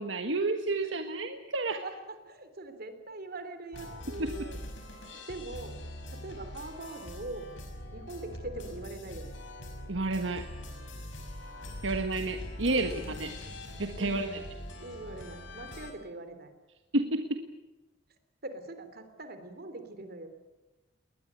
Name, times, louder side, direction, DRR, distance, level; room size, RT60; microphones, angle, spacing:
voice 1, 0.0-1.8 4.2-4.3 9.9-10.5 11.8-12.9 13.2-13.3 13.8-14.4 16.9-17.4, right 2 dB, 75° right, 6 dB, 1.6 m, -30 dB
voice 2, 1.8-4.6 5.3-5.8 6.1-7.5 7.9-9.4 12.7-13.3 14.0-14.2 14.8-16.5 18.4-20.3, right 2 dB, 55° right, 9 dB, 3.4 m, -42 dB
sound 1, 3.7-15.9, left 1 dB, 75° left, 5.8 m, -43 dB
21.0 x 20.5 x 9.4 m, 1.1 s
head